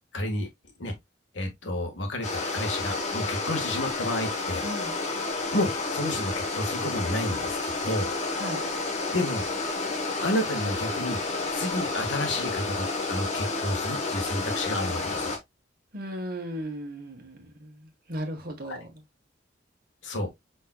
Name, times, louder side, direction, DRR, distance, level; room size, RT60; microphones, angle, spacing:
voice 1, 0.1-0.5 0.8-0.9 1.3-4.6 5.5-8.1 9.1-9.4 10.2-11.2 11.5-15.4 18.7-18.8 20.0-20.3, left 1 dB, 85° left, 1.6 m, -30 dB
sound 1, 2.2-15.4, left 3 dB, 40° left, 1.2 m, -30 dB
voice 2, 4.6-5.0 8.3-8.6 15.9-18.9, equal, 55° right, 1.4 m, -36 dB
5.4 x 4.4 x 2.2 m
head